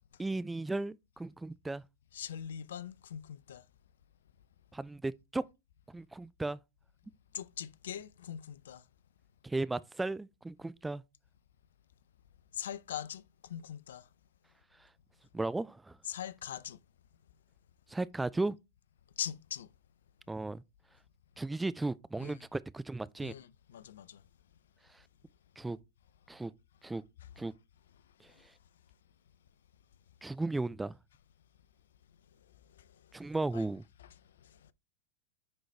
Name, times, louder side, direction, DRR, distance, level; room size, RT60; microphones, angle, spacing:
voice 1, 0.2-1.8 4.7-5.4 5.9-6.6 9.4-11.0 15.3-15.9 17.9-18.6 20.3-20.6 21.4-23.3 25.6-25.8 26.3-26.5 26.8-27.0 27.4-27.5 30.2-31.0 33.1-33.8, right 2 dB, 10° right, 0.3 m, -35 dB
voice 2, 2.1-3.6 7.3-8.8 12.5-14.1 16.1-16.8 19.2-19.7 22.2-22.3 23.2-24.2 32.8-32.9 33.5-33.7 34.4-34.7, left 9 dB, 75° left, 0.5 m, -42 dB
9.6 x 4.0 x 3.2 m
hypercardioid pair, 95°, 0 cm